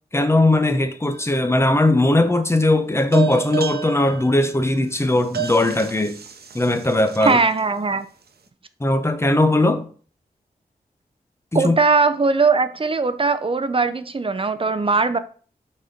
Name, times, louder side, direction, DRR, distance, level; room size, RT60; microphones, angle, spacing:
voice 1, 0.1-6.2 6.5-7.4 8.8-9.9 11.5-11.7, left 2 dB, 15° left, 0.8 m, -19 dB
sound 1, 1.1-1.7 3.1-7.6, right 9 dB, 80° right, 0.8 m, -31 dB
voice 2, 7.2-8.1 11.5-15.2, right 4 dB, 35° right, 0.6 m, -20 dB
6.0 x 4.3 x 5.2 m
wide cardioid pair, 105°, 16 cm